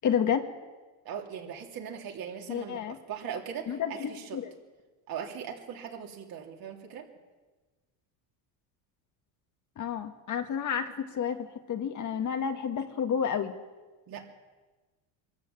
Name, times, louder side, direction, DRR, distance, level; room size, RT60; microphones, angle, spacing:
voice 1, 0.0-0.4 2.5-3.0 3.7-4.5 9.8-13.5, left 8 dB, 40° left, 6 dB, 1.7 m, -30 dB
voice 2, 1.1-4.4 5.1-7.1 14.1-14.3, right 8 dB, 50° right, 2 dB, 3.4 m, -39 dB
23.5 x 14.0 x 8.9 m, 1.3 s
cardioid pair, 140°, 45 cm